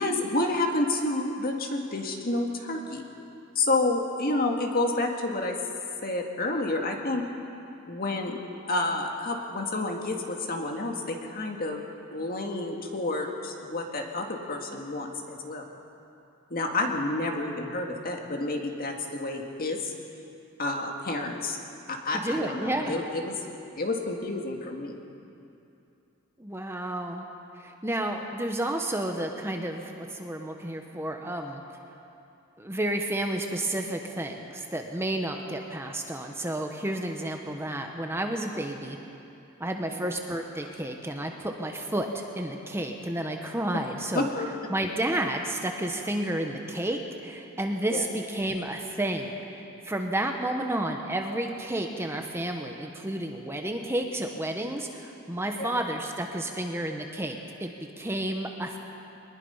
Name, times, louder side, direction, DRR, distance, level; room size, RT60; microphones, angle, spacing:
voice 1, 0.0-3.0 3.6-5.6 6.0-7.2 7.9-8.4 8.7-11.8 12.1-15.6 16.5-19.9 20.6-21.6 21.9-23.4 23.8-25.0 39.9-40.2 43.7-43.8 44.1-44.5 47.9-48.1 55.5-55.8, left 2 dB, 45° left, 2 dB, 2.0 m, -29 dB
voice 2, 22.1-23.0 26.4-27.2 27.6-31.6 32.6-39.0 39.6-44.3 44.7-57.7 58.0-58.8, right 1 dB, 10° right, 3 dB, 1.1 m, -31 dB
23.0 x 20.0 x 5.6 m, 2.8 s
head